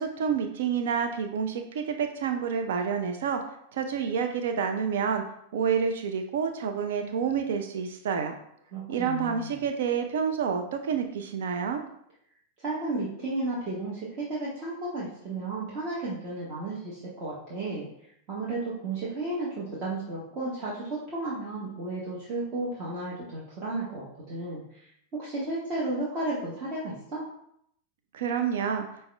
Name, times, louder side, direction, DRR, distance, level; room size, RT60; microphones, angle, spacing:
voice 1, 0.0-3.4 3.7-5.2 5.5-8.3 8.9-11.8 28.1-28.9, right 7 dB, 60° right, 6 dB, 0.4 m, -28 dB
voice 2, 8.7-9.5 12.6-17.9 18.3-27.2, right 2 dB, 35° right, -7 dB, 1.0 m, -33 dB
5.4 x 2.1 x 3.3 m, 0.72 s
figure-of-eight pair, 90°, 0 cm